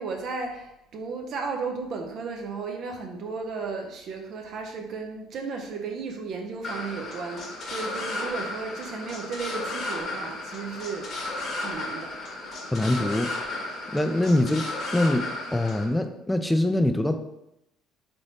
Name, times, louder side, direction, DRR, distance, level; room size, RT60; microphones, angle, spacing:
voice 1, 0.0-11.1 11.6-12.2 14.0-14.2, right 4 dB, 60° right, 3 dB, 0.4 m, -34 dB
sound 1, 6.6-15.8, left 2 dB, 55° left, 1.1 m, -34 dB
voice 2, 12.7-13.3 13.9-14.6 14.9-17.2, left 1 dB, 10° left, 7 dB, 0.4 m, -23 dB
3.2 x 3.0 x 2.6 m, 0.86 s
supercardioid pair, 75°, 0 cm